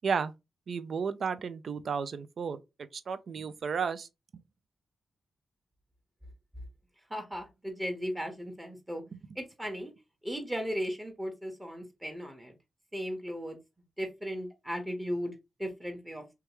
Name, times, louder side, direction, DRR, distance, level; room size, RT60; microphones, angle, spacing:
voice 1, 0.7-2.6 3.1-4.1, right 6 dB, 65° right, 0.4 m, -32 dB
voice 2, 7.1-9.0 9.3-9.9 10.2-12.5 12.9-13.6 14.0-15.3 15.6-16.2, equal, 15° right, 1.1 m, -36 dB
2.9 x 2.3 x 2.9 m
supercardioid pair, 50°, 0 cm